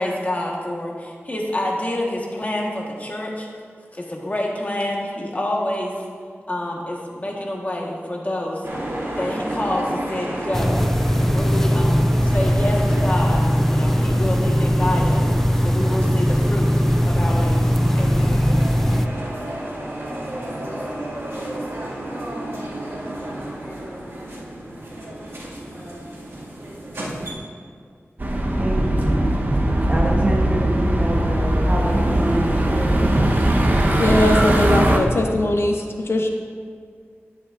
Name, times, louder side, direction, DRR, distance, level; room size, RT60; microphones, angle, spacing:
voice 1, 0.0-3.5 3.9-6.0 6.5-8.6 9.1-10.8 11.2-15.2 15.6-16.7 17.0-18.5, left 1 dB, 35° left, -1 dB, 1.4 m, -27 dB
sound 1, 8.6-27.3, right 1 dB, 85° right, 2.1 m, -31 dB
sound 2, 10.5-19.1, equal, 5° left, 0.4 m, -19 dB
sound 3, 28.2-35.0, right 1 dB, 45° right, 1.0 m, -19 dB
voice 2, 28.6-29.4 29.9-33.1, right 1 dB, 30° right, -3 dB, 1.6 m, -26 dB
voice 3, 34.0-36.3, left 1 dB, 65° left, 3 dB, 0.7 m, -20 dB
10.5 x 9.6 x 2.5 m, 2.1 s
wide cardioid pair, 85°, 5 cm